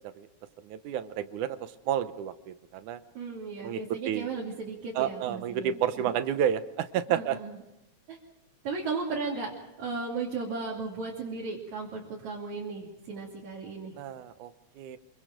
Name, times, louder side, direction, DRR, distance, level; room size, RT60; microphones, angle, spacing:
voice 1, 0.6-3.0 3.6-4.3 5.0-7.4 14.0-15.0, right 10 dB, 90° right, 11 dB, 2.5 m, -30 dB
voice 2, 3.1-6.1 7.1-7.6 8.1-8.2 8.6-14.0, right 4 dB, 70° right, -3 dB, 4.2 m, -36 dB
26.5 x 24.0 x 5.2 m, 0.92 s
omnidirectional pair, 3.4 m